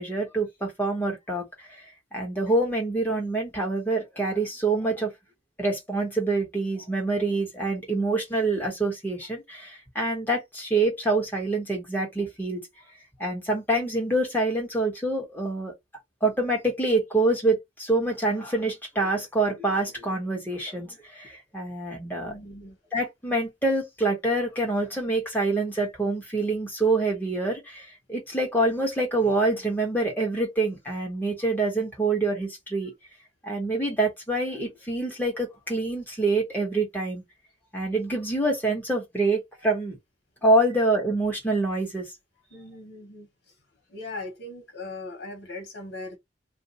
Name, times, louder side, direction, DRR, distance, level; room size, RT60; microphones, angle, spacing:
voice 1, 0.0-1.8 2.1-5.1 5.6-12.6 13.2-15.7 16.2-22.4 22.9-32.9 33.4-37.2 37.7-40.0 40.4-42.0, right 2 dB, 10° left, 1.2 m, -26 dB
voice 2, 22.2-22.8 42.5-43.5 43.9-46.2, left 2 dB, 90° left, 1.1 m, -39 dB
2.5 x 2.3 x 4.0 m
head